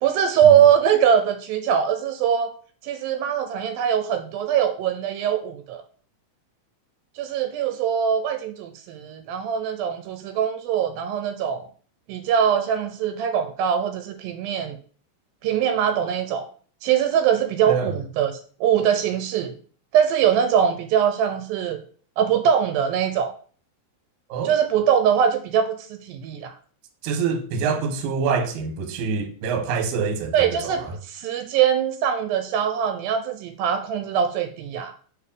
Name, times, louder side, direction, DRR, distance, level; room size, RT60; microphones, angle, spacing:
voice 1, 0.0-2.5 2.8-5.8 7.2-11.7 12.1-14.8 15.4-16.5 16.8-19.5 19.9-21.8 22.2-23.3 24.5-26.5 30.3-34.9, right 8 dB, 85° right, 2.4 m, -22 dB
voice 2, 27.0-30.9, right 5 dB, 70° right, 2.1 m, -26 dB
4.9 x 4.7 x 5.2 m
omnidirectional pair, 4.2 m